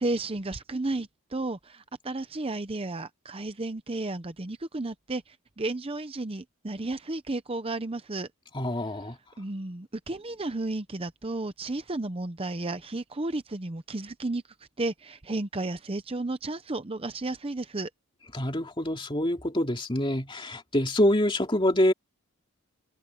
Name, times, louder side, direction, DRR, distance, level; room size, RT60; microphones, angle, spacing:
voice 1, 0.0-8.3 9.4-14.4 14.8-17.9, right 2 dB, 25° right, 0.7 m, -33 dB
voice 2, 8.5-9.2 18.3-21.9, left 1 dB, 25° left, 2.7 m, -26 dB
head